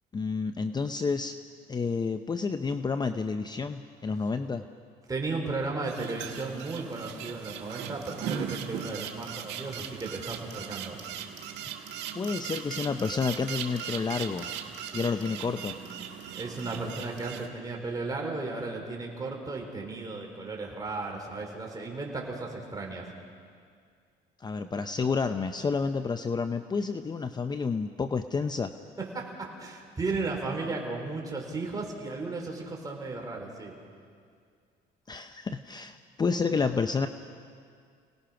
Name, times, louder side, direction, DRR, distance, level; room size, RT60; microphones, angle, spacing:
voice 1, 0.1-1.3 1.7-4.6 12.1-14.5 14.9-15.8 24.4-28.7 35.1-37.1, left 4 dB, 25° left, 9 dB, 0.7 m, -30 dB
voice 2, 5.1-11.0 16.3-23.1 29.0-33.7, right 3 dB, 20° right, 0 dB, 4.7 m, -35 dB
sound 1, 5.9-17.5, right 8 dB, 90° right, 1.9 m, -39 dB
30.0 x 18.5 x 5.9 m, 2.2 s
cardioid pair, 110°, 17 cm